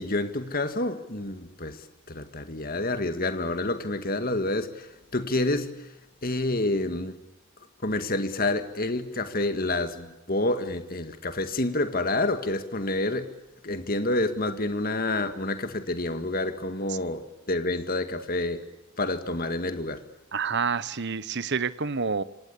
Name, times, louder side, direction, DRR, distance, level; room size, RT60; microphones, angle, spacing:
voice 1, 0.0-5.9 6.2-7.2 7.8-13.3 13.6-18.7 19.0-20.0, left 2 dB, 40° left, 2.0 m, -28 dB
voice 2, 20.3-22.2, right 5 dB, 50° right, 1.1 m, -28 dB
26.5 x 26.0 x 8.5 m
head